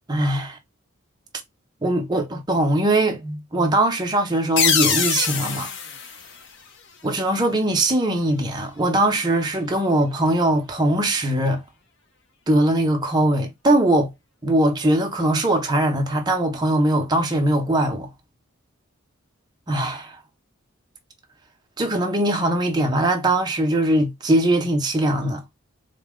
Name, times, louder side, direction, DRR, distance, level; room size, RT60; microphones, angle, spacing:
voice 1, 0.1-0.6 1.8-5.7 7.0-11.6 12.5-14.1 14.4-18.1 19.7-20.2 21.8-25.4, right 1 dB, 20° right, 0.7 m, -21 dB
sound 1, 4.6-7.1, left 6 dB, 65° left, 0.6 m, -24 dB
4.0 x 2.1 x 3.5 m
head